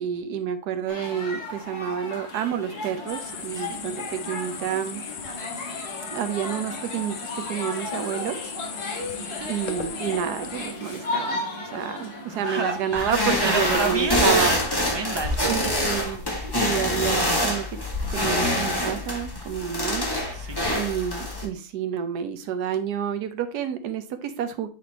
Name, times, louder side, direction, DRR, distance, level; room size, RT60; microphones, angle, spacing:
voice 1, 0.0-5.0 6.1-9.1 9.4-11.4 11.7-14.5 15.4-17.7 18.1-20.1 20.7-24.7, right 8 dB, 75° right, 9 dB, 1.4 m, -29 dB
sound 1, 0.9-13.8, left 2 dB, 70° left, 2.3 m, -35 dB
sound 2, 3.1-10.7, left 7 dB, 55° left, 1.1 m, -38 dB
voice 2, 12.4-13.1 13.4-15.7 20.3-20.8, right 4 dB, 40° right, 6 dB, 0.3 m, -30 dB
sound 3, 12.9-21.4, left 1 dB, 15° left, 1.4 m, -25 dB
8.1 x 4.3 x 4.0 m, 0.34 s
omnidirectional pair, 1.7 m